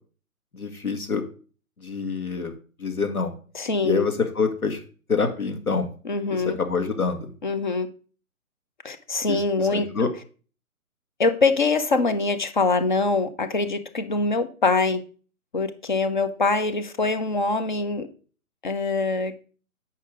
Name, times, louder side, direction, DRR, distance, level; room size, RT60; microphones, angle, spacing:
voice 1, 0.5-1.2 1.8-2.5 2.8-3.3 3.8-4.8 5.1-5.9 6.3-7.3 9.3-9.4 9.7-10.1, left 4 dB, 75° left, 5 dB, 2.1 m, -26 dB
voice 2, 3.5-4.0 6.0-6.6 7.4-7.9 8.8-9.9 11.2-15.0 15.5-18.1 18.6-19.5, left 3 dB, 35° left, 10 dB, 0.8 m, -24 dB
8.8 x 5.5 x 3.8 m, 0.38 s
figure-of-eight pair, 140°, 44 cm